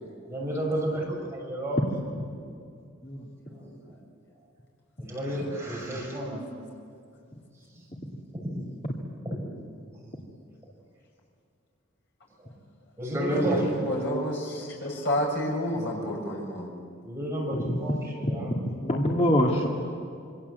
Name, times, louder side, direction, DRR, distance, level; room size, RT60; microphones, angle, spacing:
voice 1, 0.0-1.0 1.3-1.8 3.5-3.7 5.0-6.4 9.3-9.4 13.0-13.9 15.7-16.1 17.0-18.5, right 1 dB, 15° right, -3 dB, 6.7 m, -30 dB
voice 2, 13.5-16.7, left 1 dB, 60° left, -1 dB, 7.0 m, -30 dB
voice 3, 18.2-19.7, left 1 dB, 35° left, -2 dB, 2.5 m, -25 dB
27.0 x 25.0 x 8.2 m, 2.3 s
head